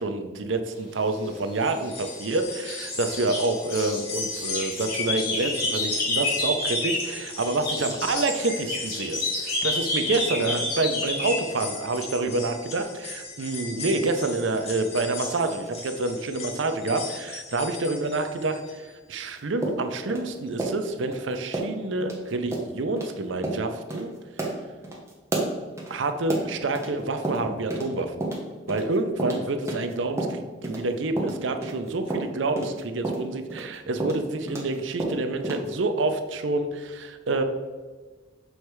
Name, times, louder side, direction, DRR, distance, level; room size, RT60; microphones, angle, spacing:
voice 1, 0.0-24.1 25.9-28.2 28.7-37.4, right 2 dB, 75° right, 7 dB, 0.6 m, -28 dB
sound 1, 1.5-2.3 2.7-7.2 7.4-11.4, left 2 dB, 50° left, 1.7 m, -29 dB
sound 2, 1.6-18.9 19.3-19.4 20.5-20.6, left 4 dB, 30° left, 0.8 m, -38 dB
sound 3, 19.6-21.2 21.5-21.8 22.0-22.2 22.5-22.7 23.0-23.1 23.4-23.6 23.9-24.0 24.4-26.9 27.2-27.9 28.2-30.8 31.2-34.7 35.0-35.7, right 2 dB, 15° right, 0.9 m, -30 dB
6.4 x 3.2 x 4.6 m, 1.3 s
head